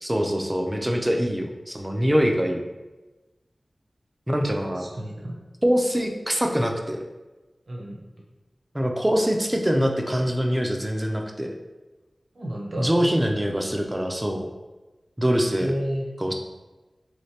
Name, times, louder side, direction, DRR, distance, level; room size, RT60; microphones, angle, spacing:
voice 1, 0.0-2.6 4.3-4.9 5.6-7.0 8.7-11.5 12.8-14.5 15.2-15.7 16.2-16.3, equal, 15° right, 3 dB, 0.4 m, -24 dB
voice 2, 4.8-5.4 7.7-8.0 12.3-13.0 15.6-16.1, equal, 75° right, -2 dB, 0.7 m, -31 dB
3.2 x 3.1 x 2.8 m, 1.2 s
wide cardioid pair, 65°, 0 cm